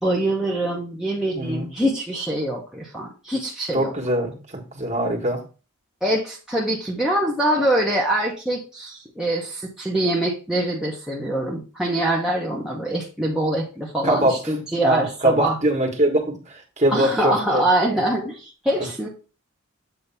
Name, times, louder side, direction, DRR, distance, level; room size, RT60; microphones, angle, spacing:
voice 1, 0.0-3.9 6.0-15.6 16.9-19.1, right 1 dB, 5° right, -4 dB, 0.9 m, -24 dB
voice 2, 1.3-1.7 3.7-5.4 14.0-14.5 14.8-17.6 18.8-18.9, right 1 dB, 30° right, 1 dB, 1.5 m, -22 dB
8.1 x 2.8 x 5.6 m, 0.34 s
head